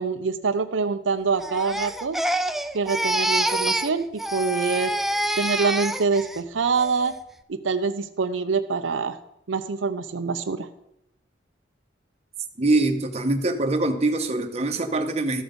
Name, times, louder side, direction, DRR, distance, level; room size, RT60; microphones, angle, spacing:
voice 1, 0.0-2.2 2.7-4.1 4.3-4.9 5.4-7.1 7.5-9.2 9.5-10.7, right 4 dB, 90° right, 9 dB, 0.6 m, -25 dB
Crying sobbing, 1.4-6.4 6.8-7.2, right 1 dB, ahead, 0.3 m, -26 dB
voice 2, 12.6-15.4, right 2 dB, 35° right, 5 dB, 0.9 m, -23 dB
13.5 x 6.2 x 5.2 m, 0.82 s
head